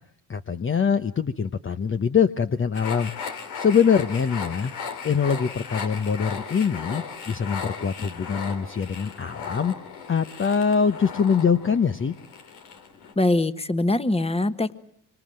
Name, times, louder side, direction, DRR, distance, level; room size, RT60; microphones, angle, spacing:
voice 1, 0.3-3.1 3.6-4.7 5.0-9.7 10.1-12.1, left 6 dB, 30° left, 8 dB, 1.0 m, -23 dB
sound 1, 2.7-13.1, left 6 dB, 90° left, 3.1 m, -37 dB
voice 2, 13.2-14.8, left 2 dB, 15° left, 12 dB, 1.4 m, -23 dB
25.5 x 25.0 x 7.7 m, 0.70 s
supercardioid pair, 70°, 38 cm